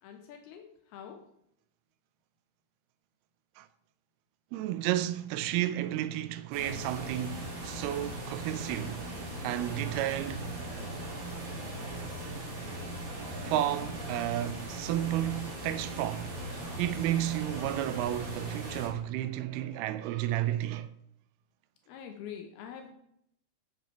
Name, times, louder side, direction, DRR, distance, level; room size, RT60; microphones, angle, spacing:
voice 1, 0.0-1.3 21.9-22.9, left 8 dB, 80° left, 2.8 m, -45 dB
voice 2, 4.5-9.0 9.4-10.4 13.5-16.3 16.8-20.9, right 13 dB, 90° right, 2.5 m, -32 dB
sound 1, 6.5-18.9, right 1 dB, 50° right, 4.1 m, -39 dB
8.7 x 7.8 x 4.5 m
omnidirectional pair, 4.4 m